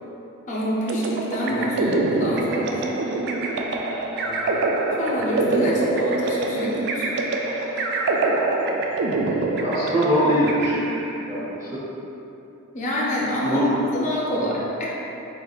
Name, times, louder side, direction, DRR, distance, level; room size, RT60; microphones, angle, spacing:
voice 1, 0.5-2.9 5.0-7.2 12.7-13.6 13.9-14.8, equal, 35° left, -6 dB, 0.5 m, -26 dB
sound 1, 0.9-11.3, right 2 dB, 50° right, 0.3 m, -25 dB
voice 2, 4.2-4.6 9.6-10.8 11.3-11.8 13.4-13.7 14.3-14.5, equal, 15° right, -11 dB, 0.8 m, -23 dB
4.2 x 3.4 x 2.3 m, 3.0 s
head